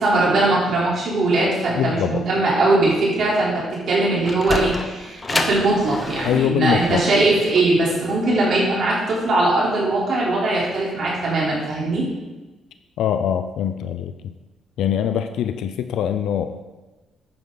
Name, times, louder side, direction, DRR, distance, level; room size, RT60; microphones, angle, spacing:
voice 1, 0.0-12.1, right 2 dB, 60° right, -6 dB, 3.9 m, -20 dB
voice 2, 1.7-2.2 6.2-7.0 13.0-14.3 14.8-16.6, left 9 dB, 80° left, 9 dB, 0.5 m, -23 dB
Sliding door, 3.9-9.1, left 2 dB, 25° left, 1.0 m, -30 dB
11.0 x 8.9 x 4.1 m, 1.2 s
cardioid pair, 90°, 0 cm